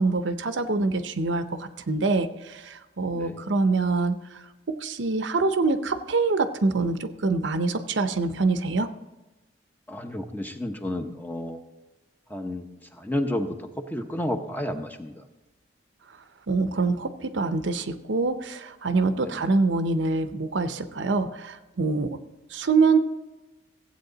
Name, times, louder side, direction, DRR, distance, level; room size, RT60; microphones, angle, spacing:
voice 1, 0.0-8.9 16.5-22.2 22.5-23.0, right 3 dB, 75° right, 10 dB, 0.7 m, -25 dB
voice 2, 9.9-11.6 12.3-15.2 19.2-19.5, left 1 dB, 10° left, 6 dB, 0.8 m, -31 dB
15.5 x 8.2 x 3.9 m, 1.1 s
head